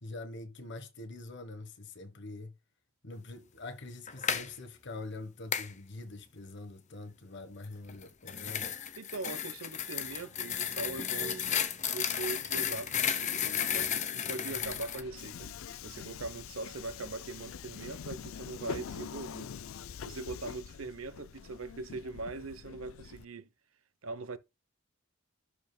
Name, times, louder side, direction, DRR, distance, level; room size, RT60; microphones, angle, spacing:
voice 1, 0.0-2.5 3.0-8.9, left 2 dB, 55° left, 1.3 m, -44 dB
sound 1, 4.1-4.5 5.5-5.7 7.9-15.0, left 9 dB, 35° left, 0.8 m, -33 dB
voice 2, 9.0-11.5 11.9-19.5 20.0-23.5 24.0-24.4, right 3 dB, 85° right, 0.9 m, -41 dB
sound 2, 9.8-16.3, right 1 dB, 40° right, 2.4 m, -55 dB
Subway metro underground, 14.5-23.3, left 7 dB, 80° left, 0.4 m, -45 dB
12.0 x 5.0 x 2.3 m
head